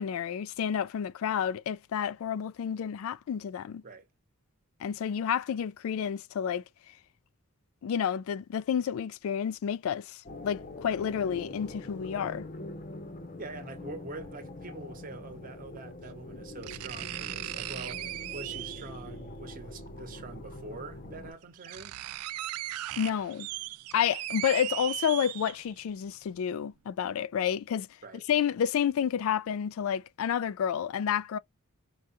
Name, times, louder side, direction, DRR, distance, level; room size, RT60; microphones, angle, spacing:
voice 1, 0.0-3.8 4.8-6.6 7.8-12.4 23.0-23.5 23.9-27.9 28.3-31.4, left 8 dB, 70° left, 0.3 m, -30 dB
sound 1, 10.3-21.3, left 1 dB, 40° left, 0.8 m, -44 dB
voice 2, 13.4-22.0 28.0-28.2, right 2 dB, 40° right, 1.0 m, -44 dB
sound 2, 14.2-14.3 15.8-15.9 16.6-19.0 20.4-20.5 21.1-21.2 21.4-25.9 26.3-26.4, right 15 dB, 85° right, 0.3 m, -38 dB
4.7 x 2.3 x 2.7 m
head